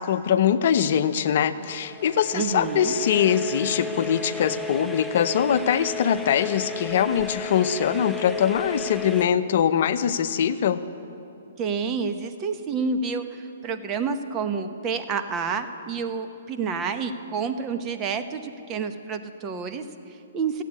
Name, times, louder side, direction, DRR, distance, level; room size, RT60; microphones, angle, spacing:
voice 1, 0.0-10.8, left 8 dB, 55° left, 11 dB, 0.7 m, -22 dB
sound 1, 1.6-9.3, left 2 dB, ahead, 0.6 m, -34 dB
voice 2, 2.3-2.9 11.6-20.6, right 5 dB, 25° right, 8 dB, 0.9 m, -29 dB
14.0 x 8.3 x 9.6 m, 2.7 s
hypercardioid pair, 140°, 0 cm